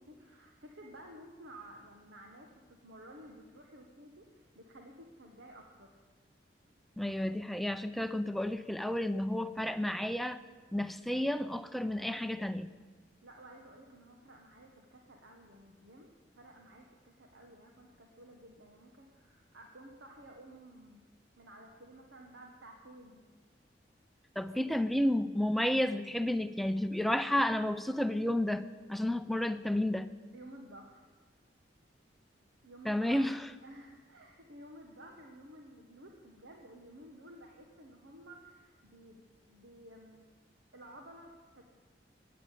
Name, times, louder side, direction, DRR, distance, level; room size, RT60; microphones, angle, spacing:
voice 1, 0.0-6.1 13.2-21.0 21.4-23.3 24.5-25.0 30.3-31.1 32.6-33.3 33.6-40.3 40.7-41.6, right 1 dB, 85° right, 2 dB, 1.4 m, -53 dB
voice 2, 7.0-10.4 10.7-12.7 24.4-28.6 28.9-30.1 32.8-33.4, left 1 dB, ahead, 11 dB, 0.5 m, -31 dB
14.0 x 9.5 x 8.5 m, 1.5 s
head